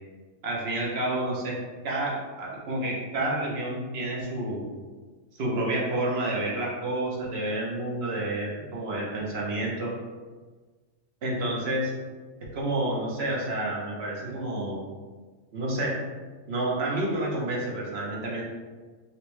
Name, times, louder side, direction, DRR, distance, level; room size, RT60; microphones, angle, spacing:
voice 1, 0.4-1.6 1.8-4.6 5.4-9.9 11.2-11.9 12.5-14.8 15.5-15.9 16.5-18.4, right 1 dB, 55° right, -4 dB, 0.9 m, -29 dB
3.9 x 2.1 x 3.0 m, 1.4 s
omnidirectional pair, 1.4 m